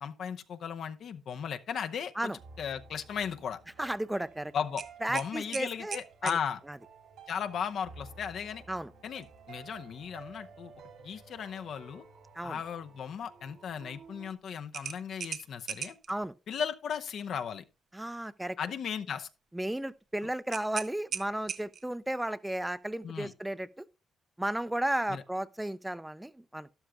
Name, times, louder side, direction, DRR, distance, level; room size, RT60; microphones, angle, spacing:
voice 1, 0.0-2.3 2.6-3.6 4.5-4.8 5.1-6.6 7.3-8.6 9.0-10.7 11.0-12.0 12.4-16.0 16.5-17.6 18.6-19.3 23.0-23.3 25.1-25.2, left 7 dB, 65° left, 0.8 m, -36 dB
sound 1, 2.2-14.3, right 4 dB, 90° right, 2.8 m, -53 dB
voice 2, 3.8-4.5 5.0-6.4 6.7-6.8 8.7-8.9 12.4-12.6 16.1-16.3 17.9-18.6 19.5-23.8 24.4-26.7, right 1 dB, 10° right, 0.5 m, -34 dB
sound 2, 4.8-6.4 9.1-9.3 9.7-9.8 14.7-16.1 20.5-22.0, right 7 dB, 55° right, 0.8 m, -39 dB
12.5 x 11.5 x 2.3 m
cardioid pair, 90°, 0 cm